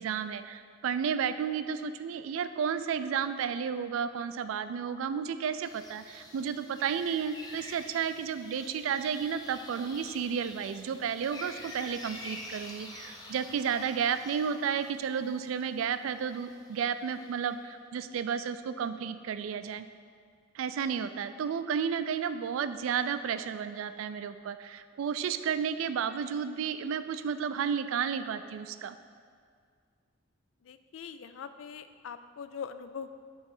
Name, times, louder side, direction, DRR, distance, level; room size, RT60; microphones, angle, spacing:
voice 1, 0.0-19.9 20.5-29.0, right 7 dB, 85° right, 11 dB, 0.3 m, -32 dB
sound 1, 5.6-17.6, left 1 dB, 20° left, 0.6 m, -48 dB
voice 2, 30.6-33.1, left 6 dB, 75° left, 11 dB, 0.3 m, -42 dB
7.2 x 3.1 x 5.4 m, 2.1 s
head